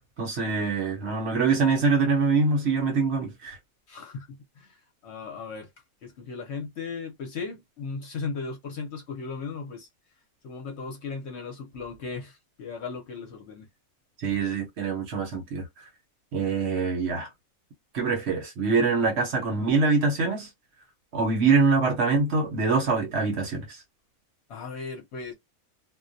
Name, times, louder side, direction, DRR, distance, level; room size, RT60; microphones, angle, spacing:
voice 1, 0.2-3.6 14.2-15.6 16.3-17.3 17.9-20.5 21.1-23.8, right 4 dB, 60° right, 0.9 m, -24 dB
voice 2, 3.9-4.3 4.6-4.7 5.0-5.7 6.0-9.9 10.4-13.7 24.5-25.3, left 4 dB, 60° left, 0.8 m, -36 dB
2.3 x 2.1 x 2.5 m
omnidirectional pair, 1.5 m